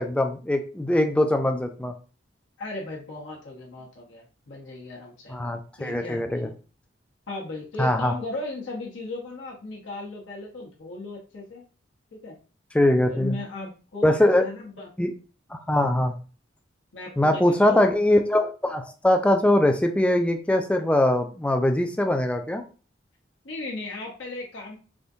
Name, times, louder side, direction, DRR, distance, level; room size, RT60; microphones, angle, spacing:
voice 1, 0.0-1.9 5.3-6.5 7.8-8.1 12.7-13.3 14.0-14.4 15.0-15.1 15.5-16.1 17.2-22.6, left 1 dB, 5° left, 6 dB, 0.3 m, -22 dB
voice 2, 2.6-5.4 5.8-6.6 7.3-11.6 12.1-12.4 13.1-14.9 16.9-17.9 23.4-24.8, left 2 dB, 80° left, -2 dB, 0.8 m, -36 dB
3.5 x 2.6 x 2.5 m, 0.36 s
head